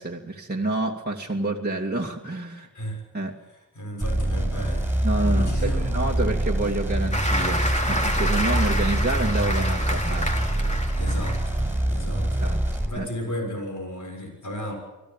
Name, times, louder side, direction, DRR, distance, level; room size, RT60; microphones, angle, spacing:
voice 1, 0.0-2.7 3.1-3.3 5.0-10.3 12.4-12.6 12.9-13.1, right 2 dB, 25° right, -2 dB, 2.6 m, -28 dB
voice 2, 3.7-4.9 5.2-6.4 11.0-12.4 12.9-14.7, equal, 50° left, 3 dB, 7.0 m, -34 dB
sound 1, 4.0-12.9, right 1 dB, 5° right, 7.2 m, -25 dB
Applause, 7.1-11.6 12.1-12.3, equal, 20° left, 3.8 m, -29 dB
25.5 x 18.0 x 9.1 m, 1.0 s
cardioid pair, 55°, 37 cm